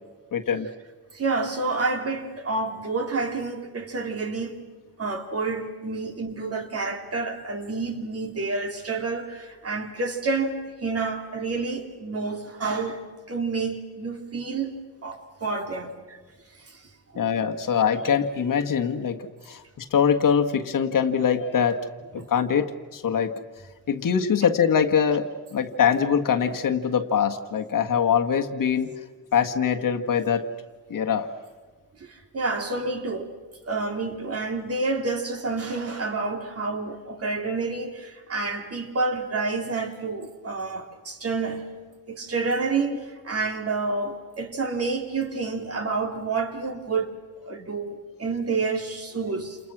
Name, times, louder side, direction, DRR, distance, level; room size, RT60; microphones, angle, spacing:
voice 1, 0.3-0.7 17.1-21.8 22.1-23.3 23.9-28.9 29.3-30.4 30.9-31.3, left 7 dB, 55° left, 1.7 m, -23 dB
voice 2, 1.1-4.6 5.0-13.0 13.3-14.8 15.0-16.2 16.6-16.8 17.1-17.2 22.2-22.3 32.0-33.3 33.7-41.7 42.1-47.1 47.5-49.6, right 3 dB, 40° right, 3.0 m, -29 dB
29.5 x 29.0 x 6.1 m
wide cardioid pair, 160°, 38 cm